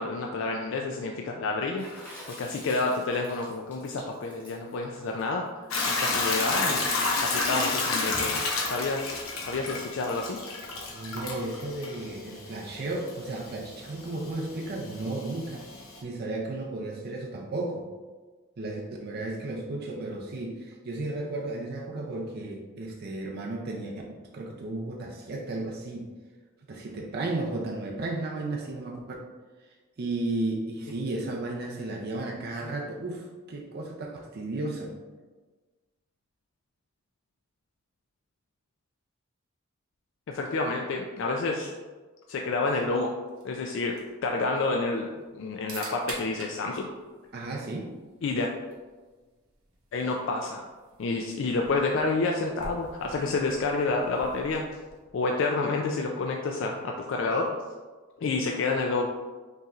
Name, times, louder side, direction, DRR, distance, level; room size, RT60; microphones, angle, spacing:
voice 1, 0.0-5.5 5.8-6.8 7.2-8.4 8.7-9.1 9.5-10.4 40.3-41.7 42.3-43.1 43.4-46.9 48.2-48.5 49.9-50.6 51.0-54.6 55.1-57.5 58.2-59.1, left 3 dB, 65° left, 1 dB, 0.4 m, -29 dB
Water / Splash splatter, 1.8-6.3, equal, 10° left, 1.0 m, -48 dB
Hiss / Toilet flush / Trickle dribble, 5.7-16.0, left 3 dB, 90° left, 0.8 m, -31 dB
voice 2, 10.9-15.6 16.0-17.9 18.6-26.1 26.7-29.2 30.0-34.9 47.3-47.9, right 2 dB, 50° right, -1 dB, 0.5 m, -34 dB
sound 1, 43.3-55.2, right 2 dB, 75° right, 1.0 m, -48 dB
5.4 x 3.0 x 2.4 m, 1.3 s
head